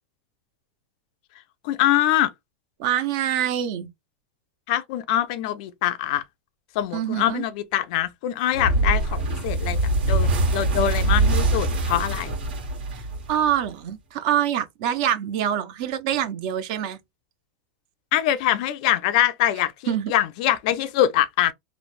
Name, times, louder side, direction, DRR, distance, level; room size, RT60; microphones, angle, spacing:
voice 1, 1.6-2.3 4.7-6.2 6.8-9.8 10.1-12.4 18.1-19.7 20.1-21.5, left 12 dB, 45° left, 0.3 m, -23 dB
voice 2, 2.8-3.9 6.9-7.4 12.9-13.0 13.3-17.0 19.9-20.1, right 10 dB, 45° right, 0.5 m, -25 dB
sound 1, 8.5-13.7, right 2 dB, 80° right, 1.4 m, -23 dB
3.1 x 2.0 x 2.4 m
supercardioid pair, 170°, 6 cm